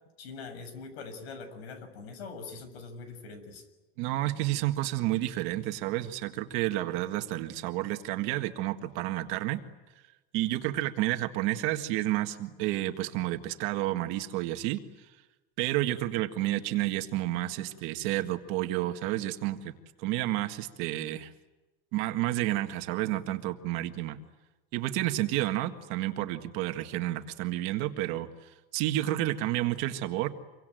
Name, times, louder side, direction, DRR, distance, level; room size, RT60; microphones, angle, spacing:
voice 1, 0.2-3.7, left 4 dB, 75° left, 11 dB, 6.6 m, -43 dB
voice 2, 4.0-9.6 10.3-14.8 15.6-19.7 20.0-21.3 21.9-24.2 24.7-30.3, right 15 dB, 40° right, 7 dB, 1.8 m, -30 dB
27.5 x 24.0 x 9.2 m, 1.1 s
supercardioid pair, 180°, 31 cm